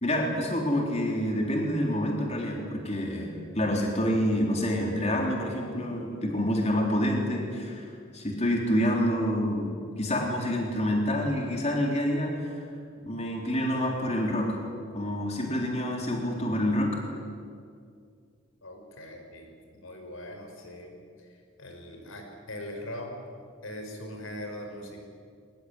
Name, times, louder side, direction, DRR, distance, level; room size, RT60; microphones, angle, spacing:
voice 1, 0.0-12.7 13.0-14.6 14.9-17.0, equal, 30° left, 0 dB, 3.8 m, -27 dB
voice 2, 18.6-23.1 23.6-25.0, left 1 dB, 85° left, 4 dB, 5.1 m, -41 dB
23.5 x 19.5 x 9.8 m, 2.3 s
head